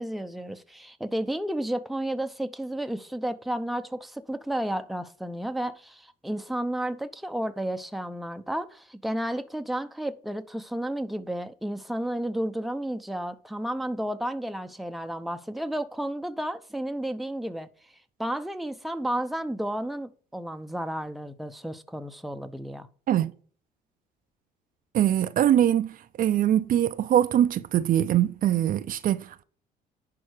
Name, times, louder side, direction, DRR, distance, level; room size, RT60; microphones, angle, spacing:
voice 1, 0.0-17.7 18.2-22.9, right 1 dB, ahead, 0.8 m, -32 dB
voice 2, 24.9-29.4, right 11 dB, 55° right, 0.7 m, -23 dB
11.0 x 4.5 x 6.5 m
cardioid pair, 110°, 17 cm